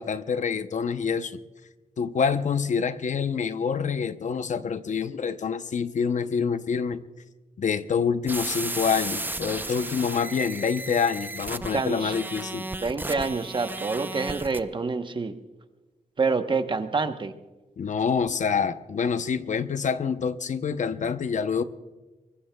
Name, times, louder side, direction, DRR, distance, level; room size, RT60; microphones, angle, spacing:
voice 1, 0.0-1.4 2.0-7.0 7.6-12.7 17.8-21.6, left 6 dB, 65° left, 11 dB, 0.7 m, -26 dB
sound 1, 8.3-14.6, right 2 dB, 15° right, 0.6 m, -34 dB
voice 2, 11.7-12.1 12.8-15.3 16.2-17.3, right 4 dB, 35° right, 8 dB, 0.9 m, -27 dB
23.5 x 21.0 x 2.3 m, 1.2 s
wide cardioid pair, 100°, 14 cm